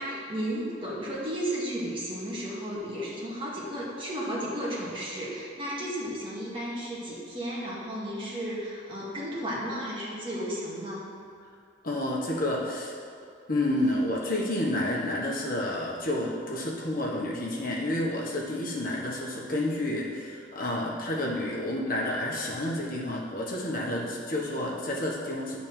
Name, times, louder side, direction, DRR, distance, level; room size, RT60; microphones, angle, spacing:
voice 1, 0.0-11.1, equal, 25° right, -6 dB, 2.1 m, -33 dB
voice 2, 11.8-13.0 13.5-25.6, left 1 dB, 45° left, -3 dB, 1.3 m, -30 dB
10.5 x 4.2 x 7.5 m, 2.3 s
head